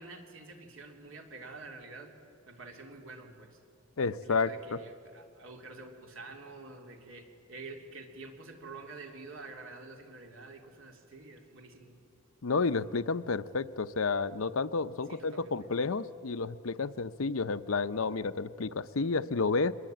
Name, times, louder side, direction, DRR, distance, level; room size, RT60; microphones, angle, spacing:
voice 1, 0.0-2.1 2.4-3.6 4.2-12.0 15.1-15.5, right 3 dB, 70° right, 3 dB, 3.3 m, -48 dB
voice 2, 4.0-4.8 12.4-19.7, left 4 dB, 75° left, 13 dB, 0.7 m, -31 dB
25.5 x 21.0 x 9.0 m, 2.4 s
head